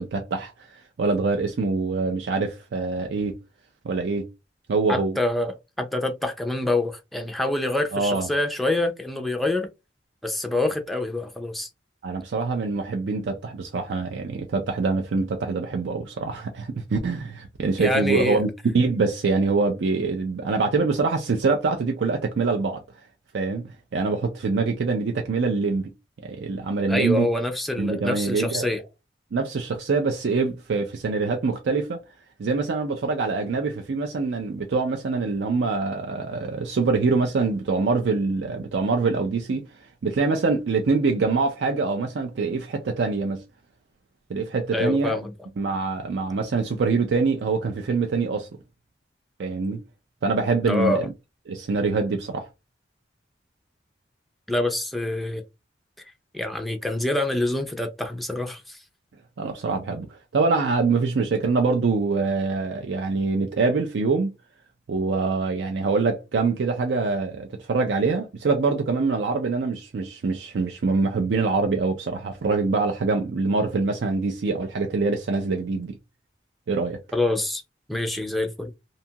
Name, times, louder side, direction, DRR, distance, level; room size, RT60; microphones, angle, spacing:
voice 1, 0.0-3.4 3.8-4.3 4.7-5.2 7.9-8.3 12.0-22.8 23.3-25.9 26.2-27.3 27.8-28.7 29.3-32.0 32.4-43.4 44.3-45.2 45.6-48.5 49.4-49.8 50.2-51.1 51.5-52.5 59.4-64.3 64.9-75.9 76.7-77.0, right 4 dB, 70° right, 0.4 m, -24 dB
voice 2, 4.9-9.7 10.2-11.7 17.8-18.4 26.9-28.8 44.7-45.3 50.6-51.1 54.5-55.4 56.3-58.8 77.1-77.6 77.9-78.7, left 2 dB, ahead, 0.4 m, -26 dB
2.7 x 2.3 x 2.7 m
head